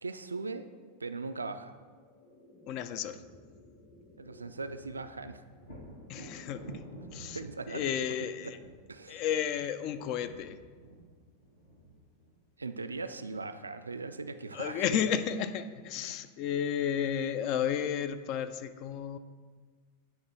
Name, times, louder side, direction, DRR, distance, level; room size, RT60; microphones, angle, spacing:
voice 1, 0.0-0.7 1.0-1.8 4.2-5.4 6.7-6.8 7.3-8.5 8.9-9.2 12.6-15.0 15.9-16.2, right 3 dB, 75° right, 10 dB, 0.3 m, -39 dB
sound 1, 1.3-11.8, left 2 dB, 20° left, 1.1 m, -60 dB
voice 2, 2.7-3.2 6.1-6.7 7.1-8.6 9.1-10.6 14.5-19.2, left 9 dB, 40° left, 11 dB, 0.4 m, -32 dB
Thunder, 5.6-13.3 16.9-17.0 17.5-18.4, right 1 dB, 75° left, 1.7 m, -51 dB
9.6 x 3.4 x 4.1 m, 1.5 s
figure-of-eight pair, 90°, 0 cm